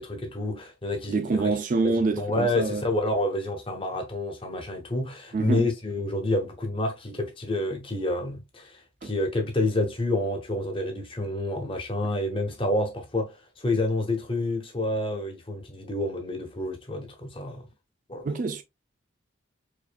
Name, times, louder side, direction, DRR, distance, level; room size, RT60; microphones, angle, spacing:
voice 1, 0.0-1.6 1.8-17.7 18.1-18.2, left 1 dB, 25° left, 0.8 m, -29 dB
voice 2, 1.1-2.8 5.3-5.7 9.0-9.1 18.2-18.6, right 3 dB, 40° right, 0.3 m, -26 dB
4.7 x 2.6 x 2.2 m
head